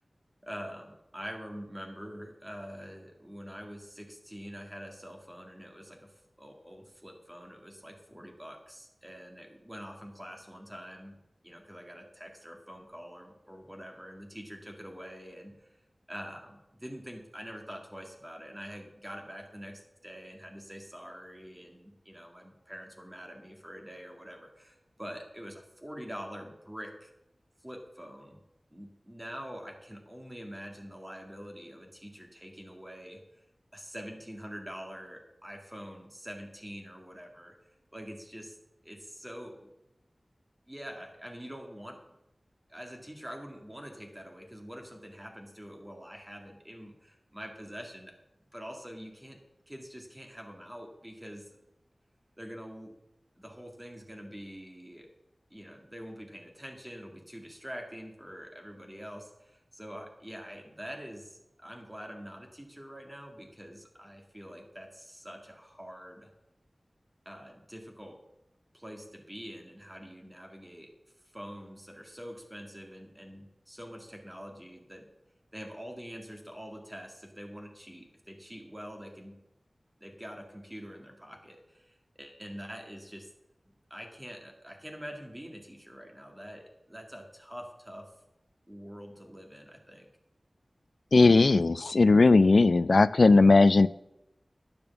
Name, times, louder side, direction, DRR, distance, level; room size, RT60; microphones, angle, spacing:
voice 1, 0.4-15.8 16.1-27.1 27.6-28.4 28.7-33.4 33.7-37.6 37.9-38.6 38.8-39.7 40.7-42.2 42.7-48.1 48.5-49.4 49.7-51.6 52.4-52.9 53.4-55.1 55.5-66.3 67.3-68.2 68.7-70.9 71.3-75.1 75.5-79.4 80.0-83.3 83.6-88.1 88.7-90.1, equal, 15° right, 2 dB, 2.0 m, -45 dB
voice 2, 91.1-93.9, left 3 dB, 65° left, 18 dB, 0.4 m, -19 dB
10.5 x 6.9 x 7.1 m, 0.88 s
wide cardioid pair, 80°, 0 cm